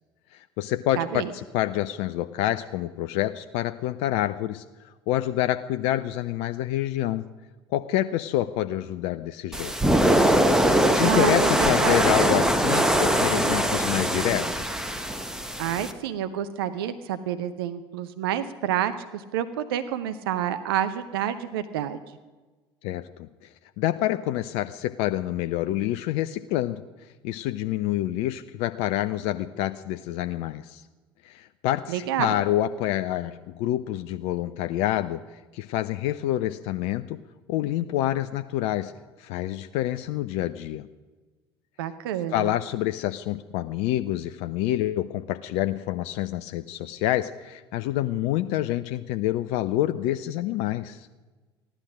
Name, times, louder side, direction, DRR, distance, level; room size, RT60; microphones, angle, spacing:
voice 1, 0.3-1.2 1.5-7.2 7.7-9.7 10.9-14.8 22.8-23.5 23.8-30.8 31.2-35.2 35.5-37.2 37.5-38.9 39.2-40.9 42.3-51.1, left 13 dB, 50° left, 10 dB, 0.5 m, -27 dB
voice 2, 1.0-1.3 11.0-12.0 15.6-22.0 31.9-32.4 41.8-42.5, right 10 dB, 65° right, 11 dB, 0.7 m, -28 dB
sound 1, 9.5-15.9, right 1 dB, 5° right, 1.1 m, -22 dB
15.5 x 11.5 x 6.2 m, 1.3 s
figure-of-eight pair, 65°, 13 cm